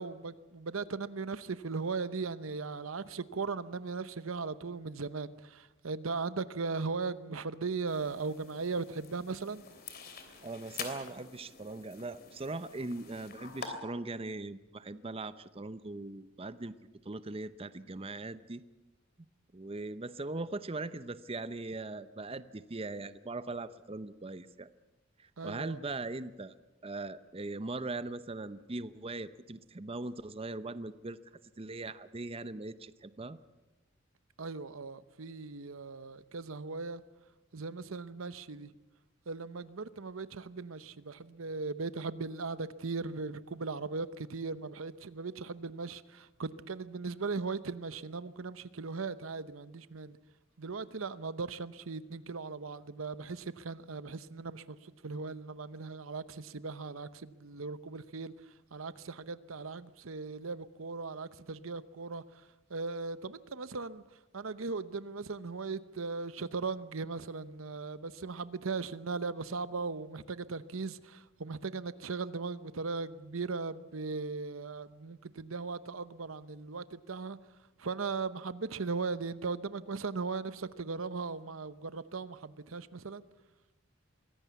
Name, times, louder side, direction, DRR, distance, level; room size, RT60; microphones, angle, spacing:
voice 1, 0.0-9.6 25.4-25.8 34.4-37.0 37.5-38.7 39.3-50.2 50.6-58.3 58.7-62.2 62.7-64.0 64.3-77.4 77.8-83.2, right 4 dB, 85° right, 15 dB, 0.8 m, -38 dB
sound 1, 7.9-13.7, left 6 dB, 50° left, 3.1 m, -47 dB
voice 2, 10.4-16.7 17.0-18.6 19.5-24.7 25.2-26.6 26.8-31.2 31.6-33.4, right 2 dB, 30° right, 14 dB, 0.7 m, -40 dB
23.0 x 17.0 x 8.3 m, 1.1 s
head